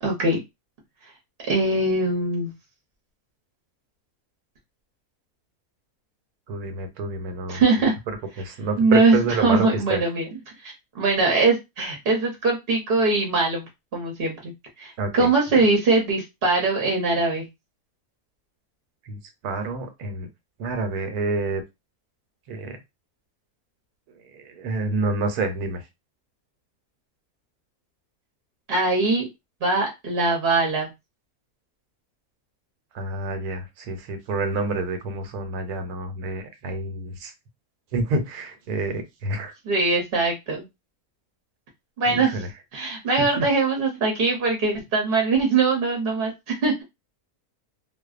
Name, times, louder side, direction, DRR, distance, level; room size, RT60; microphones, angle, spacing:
voice 1, 0.0-0.4 1.5-2.5 7.5-7.9 8.8-10.3 10.6-13.6 13.9-14.5 14.8-17.5 28.7-29.3 29.6-30.9 39.6-40.7 42.0-42.4 42.7-46.8, right 3 dB, 50° right, 0 dB, 0.7 m, -22 dB
voice 2, 6.5-7.6 8.4-10.0 15.0-15.3 19.1-19.2 19.4-20.3 20.6-21.6 22.5-22.8 24.4-25.8 32.9-37.3 37.9-39.5 42.1-42.5 43.2-43.5, right 3 dB, 90° right, 7 dB, 1.1 m, -28 dB
2.6 x 2.1 x 2.3 m, 0.22 s
omnidirectional pair, 1.5 m